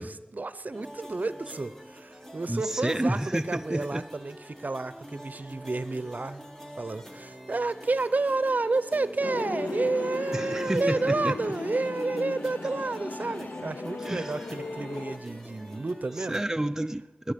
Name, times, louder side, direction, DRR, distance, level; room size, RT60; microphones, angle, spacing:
voice 1, 0.0-6.4 6.8-16.4, right 3 dB, 65° right, 14 dB, 0.6 m, -30 dB
sound 1, 0.7-16.4, equal, 10° left, 1.9 m, -46 dB
voice 2, 2.5-4.1 10.3-11.3 14.0-14.3 16.3-17.3, right 1 dB, 15° right, 9 dB, 0.5 m, -30 dB
sound 2, 9.2-15.2, left 3 dB, 85° left, 0.7 m, -36 dB
21.5 x 10.5 x 5.2 m, 1.1 s
wide cardioid pair, 55°, 3 cm